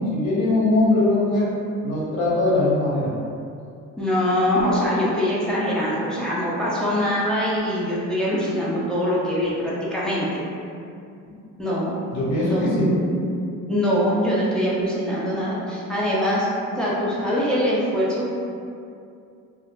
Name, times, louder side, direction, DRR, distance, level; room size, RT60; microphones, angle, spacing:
voice 1, 0.1-1.5 1.8-3.1 11.3-11.4 12.1-12.9, left 2 dB, 65° left, -7 dB, 1.0 m, -21 dB
voice 2, 4.0-10.3 11.6-11.9 12.4-13.2 13.7-16.5 16.8-18.3, equal, ahead, -7 dB, 0.6 m, -23 dB
2.2 x 2.1 x 3.0 m, 2.5 s
supercardioid pair, 70°, 40 cm